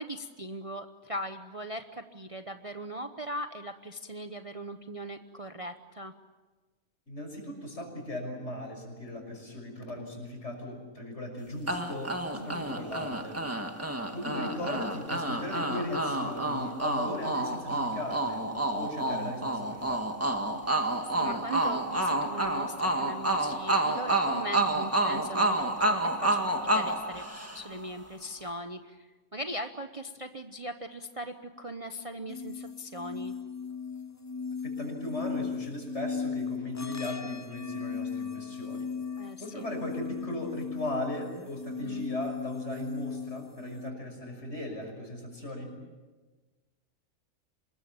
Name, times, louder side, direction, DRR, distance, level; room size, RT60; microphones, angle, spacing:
voice 1, 0.0-6.1 12.3-12.7 17.0-17.5 21.2-27.3 27.5-33.3 39.2-39.7 41.8-42.1, right 1 dB, 30° right, 7 dB, 0.9 m, -39 dB
voice 2, 7.1-13.4 13.8-18.4 18.7-20.2 34.6-38.9 39.4-45.7, left 1 dB, 55° left, 3 dB, 6.4 m, -38 dB
sound 1, 11.7-27.9, right 1 dB, 10° right, 1.8 m, -29 dB
sound 2, 32.3-43.9, left 5 dB, 20° left, 0.5 m, -37 dB
26.0 x 21.5 x 8.8 m, 1.3 s
omnidirectional pair, 1.4 m